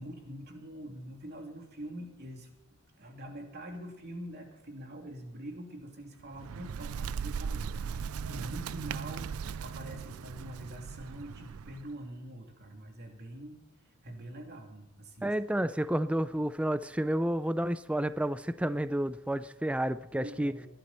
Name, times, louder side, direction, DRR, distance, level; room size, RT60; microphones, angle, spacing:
voice 1, 0.0-2.5 3.0-9.3 9.6-13.6 14.0-15.3 20.1-20.7, right 1 dB, 50° right, 3.0 m, -45 dB
Bird, 6.2-11.9, right 6 dB, 85° right, 0.4 m, -38 dB
voice 2, 15.2-20.5, right 1 dB, 5° right, 0.4 m, -30 dB
20.5 x 12.0 x 4.3 m
head